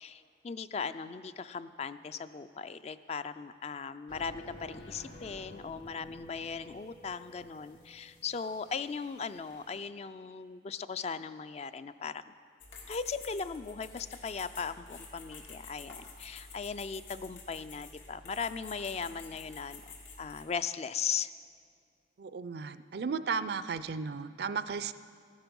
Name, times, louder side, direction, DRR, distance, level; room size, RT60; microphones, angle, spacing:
voice 1, 0.0-12.3 12.9-21.3, left 6 dB, 35° left, 13 dB, 0.3 m, -38 dB
sound 1, 4.1-9.8, equal, 75° left, 1.9 m, -52 dB
sound 2, 12.6-20.4, left 4 dB, 90° left, 2.1 m, -50 dB
voice 2, 22.2-24.9, right 5 dB, 55° right, 13 dB, 0.4 m, -35 dB
14.5 x 10.5 x 5.3 m, 2.2 s
head